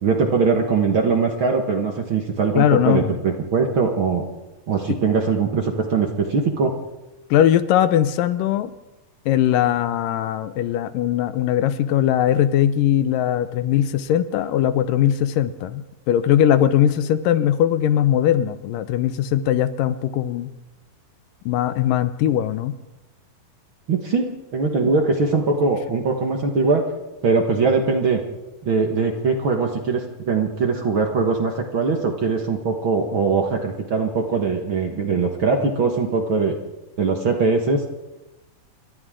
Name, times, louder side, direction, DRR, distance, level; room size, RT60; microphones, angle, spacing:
voice 1, 0.0-4.2 4.7-6.7 23.9-26.8 27.2-28.2 28.6-36.6 37.0-37.8, right 4 dB, 50° right, 3 dB, 1.8 m, -21 dB
voice 2, 2.6-3.1 4.9-5.0 7.3-8.7 9.3-20.5 21.5-22.8, left 11 dB, 80° left, 12 dB, 2.4 m, -20 dB
29.0 x 24.0 x 3.8 m, 1.0 s
omnidirectional pair, 4.0 m